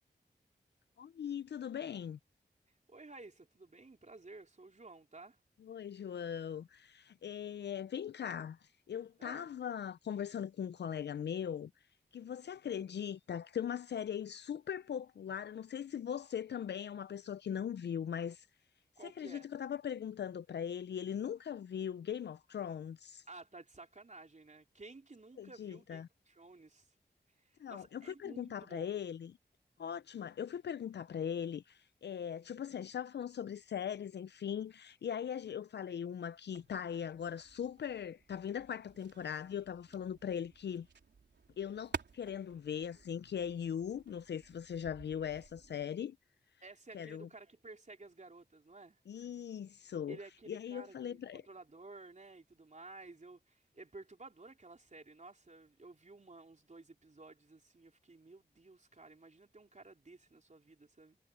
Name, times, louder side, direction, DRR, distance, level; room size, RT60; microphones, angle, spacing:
voice 1, 1.0-2.2 5.6-11.7 12.1-18.5 19.0-23.2 25.4-26.1 27.6-29.4 29.8-40.9 41.6-46.2 46.9-47.3 49.1-50.2 50.5-51.4, left 8 dB, 75° left, 0.4 m, -40 dB
voice 2, 2.9-5.4 9.2-9.5 19.0-19.5 23.3-26.9 27.4-28.9 46.6-49.0 50.1-61.2, right 3 dB, 40° right, 3.6 m, -54 dB
sound 1, 36.5-45.8, right 5 dB, 80° right, 3.5 m, -52 dB
cardioid pair, 45°, 18 cm